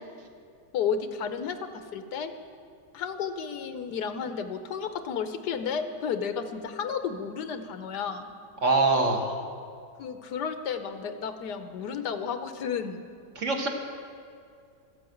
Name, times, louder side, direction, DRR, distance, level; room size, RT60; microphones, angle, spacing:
voice 1, 0.7-1.6 1.9-2.3 2.9-8.3 10.0-13.1, left 6 dB, 85° left, 8 dB, 1.4 m, -32 dB
voice 2, 8.6-9.3 13.3-13.7, right 3 dB, 50° right, 2 dB, 1.6 m, -23 dB
13.5 x 8.7 x 7.9 m, 2.3 s
omnidirectional pair, 1.7 m